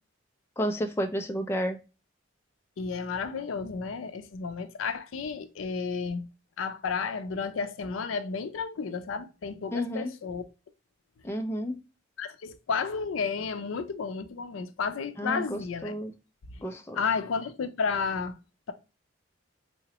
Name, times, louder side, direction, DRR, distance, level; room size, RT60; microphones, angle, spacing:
voice 1, 0.6-1.8 9.7-10.1 11.2-11.8 15.2-16.1 16.6-17.0, equal, 10° left, 0.3 m, -31 dB
voice 2, 2.8-6.3 6.6-10.5 12.2-16.0 16.5-16.6 17.0-18.4, left 5 dB, 90° left, 0.4 m, -32 dB
3.7 x 2.1 x 2.8 m
head